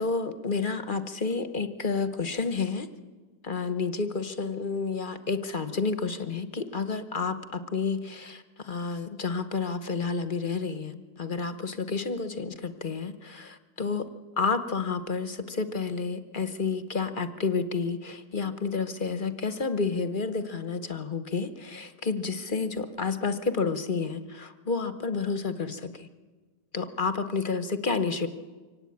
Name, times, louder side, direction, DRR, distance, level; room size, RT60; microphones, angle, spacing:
voice 1, 0.0-2.9 3.4-14.1 14.4-26.1 26.7-28.3, left 4 dB, 40° left, 10 dB, 0.8 m, -30 dB
24.5 x 18.0 x 8.7 m, 1.4 s
omnidirectional pair, 2.0 m